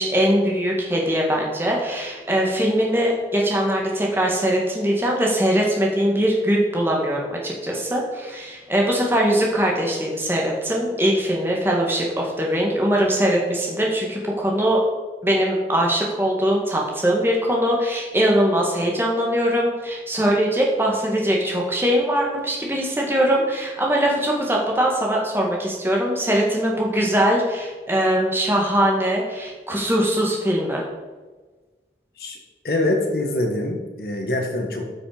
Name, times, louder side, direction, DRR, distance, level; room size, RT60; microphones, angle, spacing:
voice 1, 0.0-14.8 15.2-30.8, equal, 15° right, -2 dB, 1.8 m, -21 dB
voice 2, 32.6-34.9, left 1 dB, 55° left, 2 dB, 1.5 m, -24 dB
13.0 x 6.0 x 5.1 m, 1.3 s
head